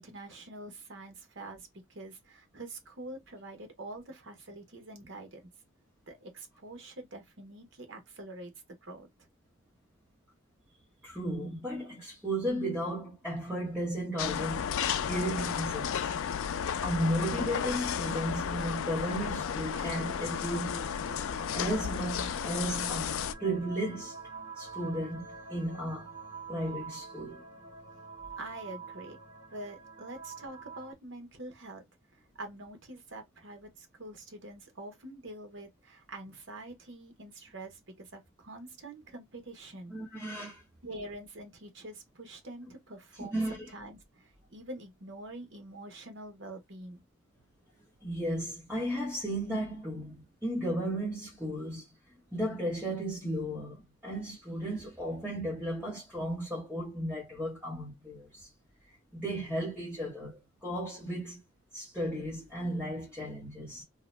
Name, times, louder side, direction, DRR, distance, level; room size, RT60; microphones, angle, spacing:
voice 1, 0.0-5.5 6.1-8.5 8.8-9.3 28.4-29.2 29.5-31.8 32.1-39.9 40.8-47.0, right 2 dB, 65° right, 1.0 m, -45 dB
voice 2, 11.0-14.8 15.1-16.1 16.8-20.8 21.5-24.2 24.5-26.1 26.5-27.4 39.9-40.6 43.3-43.6 48.0-51.9 52.3-58.5 59.1-61.4 61.7-63.8, right 1 dB, 5° right, 1.0 m, -34 dB
sound 1, 14.2-23.3, left 8 dB, 85° left, 0.3 m, -33 dB
sound 2, 19.7-30.9, right 4 dB, 40° right, 1.6 m, -46 dB
2.7 x 2.2 x 3.1 m
head